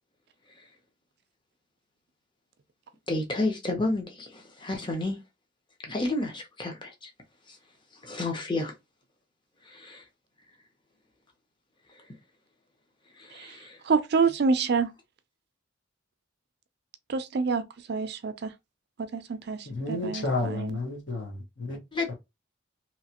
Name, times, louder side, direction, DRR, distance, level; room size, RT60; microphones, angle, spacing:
voice 1, 3.1-5.2 5.8-7.1 7.5-7.6 8.0-8.7 9.6-10.0 13.2-13.8 21.9-22.1, left 2 dB, 25° left, 0.8 m, -31 dB
voice 2, 13.8-14.9 17.1-18.5 19.0-20.8, right 4 dB, 55° right, 0.4 m, -27 dB
voice 3, 19.6-21.8 22.1-22.2, left 2 dB, 65° left, 1.4 m, -31 dB
3.1 x 2.8 x 2.8 m
head